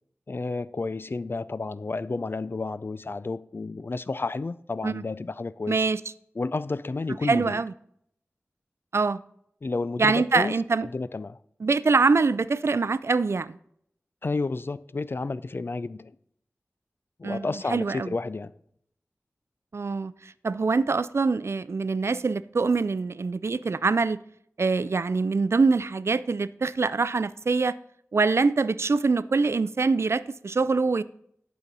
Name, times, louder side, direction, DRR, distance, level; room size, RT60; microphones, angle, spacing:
voice 1, 0.3-5.9 6.4-7.6 9.6-11.4 14.2-16.2 17.2-18.5, left 3 dB, 50° left, 0.4 m, -31 dB
voice 2, 5.7-6.0 7.2-7.7 8.9-9.2 10.0-10.9 11.6-13.6 17.2-18.1 19.7-24.2 24.6-27.8 28.1-31.0, right 4 dB, 65° right, 0.4 m, -24 dB
11.5 x 6.8 x 4.1 m
wide cardioid pair, 60°, 5 cm